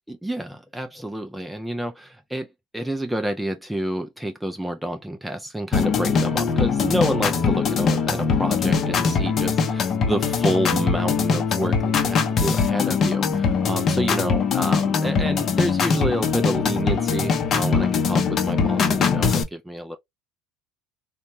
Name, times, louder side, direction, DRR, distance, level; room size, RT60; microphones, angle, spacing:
voice 1, 0.1-2.5 2.7-20.0, right 1 dB, 5° right, 0.4 m, -28 dB
sound 1, 5.7-19.4, left 5 dB, 40° left, 0.6 m, -22 dB
3.0 x 2.2 x 2.6 m
supercardioid pair, 90°, 0 cm